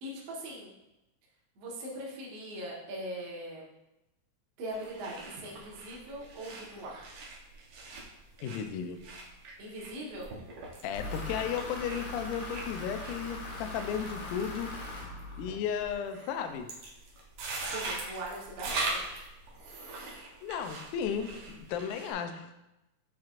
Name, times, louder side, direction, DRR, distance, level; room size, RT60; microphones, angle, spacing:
voice 1, 0.0-0.7 1.6-3.6 4.6-7.1 9.6-10.3 17.4-19.0, right 1 dB, 55° right, -4 dB, 2.1 m, -41 dB
sound 1, 4.7-22.1, right 3 dB, 85° right, 1.1 m, -42 dB
voice 2, 8.4-9.0 10.8-14.7 15.4-16.7 20.4-22.5, left 8 dB, 80° left, 7 dB, 2.0 m, -34 dB
sound 2, 11.0-15.9, left 2 dB, 55° left, 2.5 m, -41 dB
7.4 x 5.9 x 2.5 m, 0.94 s
omnidirectional pair, 3.8 m